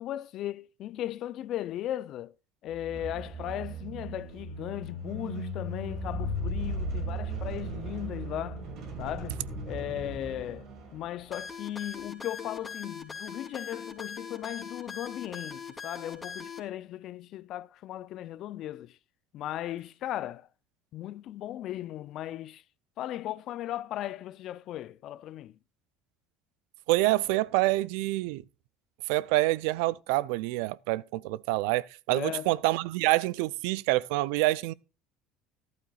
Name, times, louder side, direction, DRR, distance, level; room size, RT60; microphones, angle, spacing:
voice 1, 0.0-2.3 2.6-8.6 9.0-9.4 9.7-19.0 19.3-20.5 20.9-22.6 23.0-25.5 32.1-32.5, left 13 dB, 60° left, 0.4 m, -37 dB
sound 1, 2.7-11.5, right 1 dB, 65° right, 4.8 m, -37 dB
sound 2, 11.3-16.6, left 5 dB, 20° left, 2.9 m, -41 dB
voice 2, 26.9-28.4 29.1-34.7, right 19 dB, 80° right, 0.4 m, -27 dB
14.0 x 12.0 x 2.4 m
supercardioid pair, 95°, 0 cm